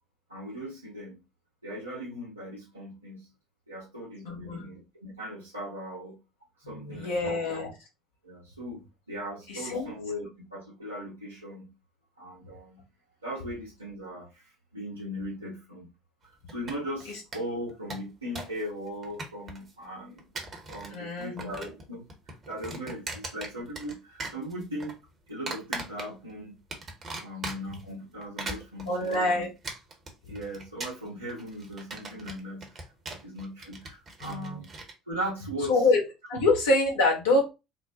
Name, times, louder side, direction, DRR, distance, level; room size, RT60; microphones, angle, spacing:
voice 1, 0.3-1.2 1.6-3.3 3.7-6.2 6.7-7.4 8.2-8.8 9.1-11.7 12.2-12.8 13.2-15.9 16.5-20.2 20.7-24.9 25.3-26.5 27.2-29.5 30.3-32.6 33.1-34.7 35.1-35.8, equal, 85° right, -6 dB, 0.9 m, -38 dB
voice 2, 4.2-4.6 6.6-7.7 9.5-9.9 20.9-21.7 28.9-29.5 34.2-34.6 35.7-36.0 36.3-37.4, left 2 dB, 70° left, -2 dB, 0.9 m, -26 dB
sound 1, 16.5-17.0 17.3-17.4 17.7-18.6 18.9-19.7 20.2-21.0 21.2-21.8 22.1-23.9 24.2-24.9 25.5-26.3 26.7-27.8 28.2-34.9, right 3 dB, 35° right, 0.9 m, -39 dB
3.8 x 2.1 x 2.7 m, 0.26 s
figure-of-eight pair, 60°, 0 cm